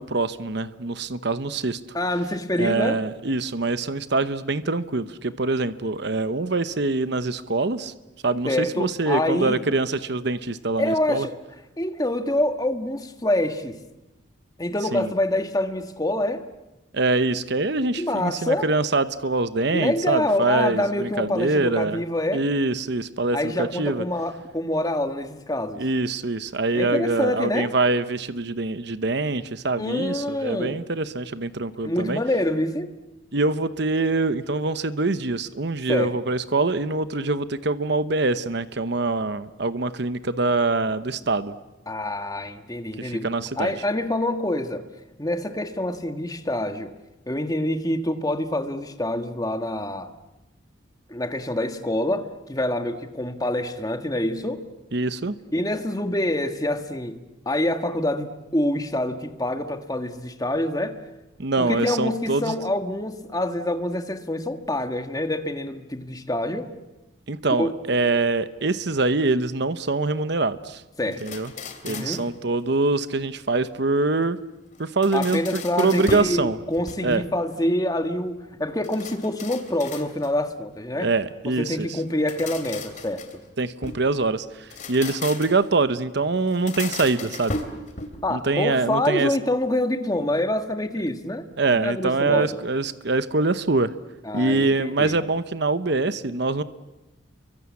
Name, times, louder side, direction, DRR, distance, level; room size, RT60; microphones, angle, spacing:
voice 1, 0.0-1.8 2.6-7.9 8.2-11.3 14.9-15.1 16.9-22.0 22.3-24.0 25.8-32.2 33.3-41.5 43.0-43.7 54.9-55.4 61.4-62.6 67.3-70.8 71.2-71.5 71.8-74.4 74.8-76.6 77.0-77.2 81.0-82.0 83.6-87.5 88.3-89.4 91.6-93.9 94.3-96.6, right 3 dB, 55° right, 12 dB, 0.9 m, -24 dB
voice 2, 1.9-3.0 8.4-9.6 10.8-11.3 11.8-13.8 14.6-16.5 18.0-18.7 19.7-22.5 23.3-25.8 26.7-27.7 29.8-30.8 31.8-32.9 35.9-36.1 41.9-44.9 45.2-46.9 47.3-50.1 51.1-54.7 55.5-61.0 61.6-66.7 67.5-67.7 71.0-71.2 71.8-72.2 75.1-81.1 81.6-83.2 88.2-91.5 91.7-92.6 94.2-95.2, left 1 dB, 20° left, 7 dB, 1.6 m, -26 dB
sound 1, 71.1-72.3 74.7-76.4 76.7-77.4 78.8-80.4 82.0-84.1 84.6-85.7 86.5-88.3, left 3 dB, 40° left, 2.9 m, -36 dB
29.5 x 24.0 x 8.5 m, 1.0 s
head